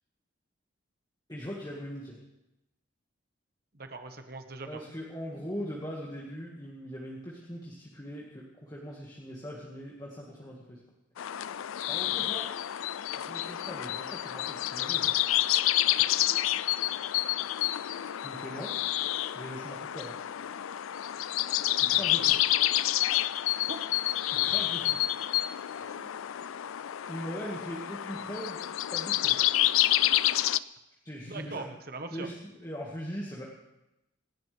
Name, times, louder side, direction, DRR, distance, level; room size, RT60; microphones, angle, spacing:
voice 1, 1.3-2.2 4.7-10.8 11.2-11.3 11.9-12.5 13.2-15.1 18.2-18.7 19.2-20.2 21.8-22.4 24.3-25.0 27.1-28.6 28.9-29.4 31.0-31.7 32.1-33.4, equal, 20° left, -4 dB, 1.9 m, -40 dB
voice 2, 3.7-4.8 12.2-12.3 23.7-23.8 25.7-26.0 31.3-32.3, right 3 dB, 45° right, 6 dB, 1.3 m, -41 dB
sound 1, 11.2-30.6, left 14 dB, 85° left, 0.4 m, -29 dB
26.5 x 11.5 x 3.5 m, 0.93 s
head